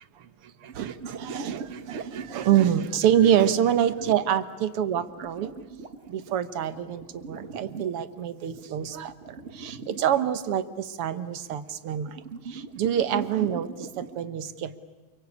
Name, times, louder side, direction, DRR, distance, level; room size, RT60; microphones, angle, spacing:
sound 1, 0.6-4.3 5.0-8.0 8.5-10.1 12.1-14.2, right 4 dB, 40° right, 1.0 m, -40 dB
voice 1, 0.6-5.5 6.1-9.1 9.5-12.2 12.5-14.8, right 10 dB, 60° right, 13 dB, 1.8 m, -26 dB
29.0 x 24.0 x 8.4 m, 1.2 s
omnidirectional pair, 3.3 m